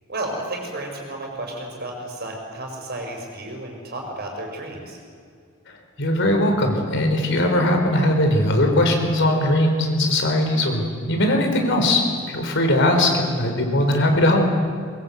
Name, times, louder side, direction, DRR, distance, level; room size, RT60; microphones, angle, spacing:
voice 1, 0.1-5.0, right 1 dB, 50° right, 1 dB, 5.7 m, -32 dB
voice 2, 5.7-12.0 12.3-14.4, left 1 dB, 60° left, 3 dB, 4.3 m, -20 dB
23.5 x 22.0 x 8.1 m, 2.2 s
head